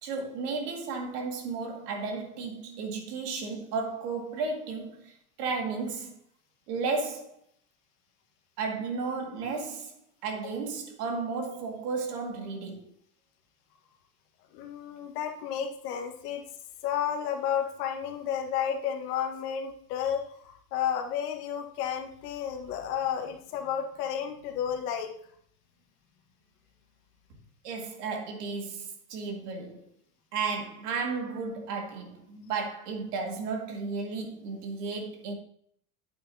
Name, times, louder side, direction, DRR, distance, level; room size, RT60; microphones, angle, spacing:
voice 1, 0.0-6.2 6.7-7.4 8.6-9.9 10.2-12.9 27.6-29.9 30.3-35.3, right 4 dB, 80° right, 2.2 m, -34 dB
voice 2, 14.5-16.4 16.8-25.1, left 8 dB, 75° left, 1.6 m, -32 dB
8.9 x 8.7 x 2.8 m
supercardioid pair, 100°, 46 cm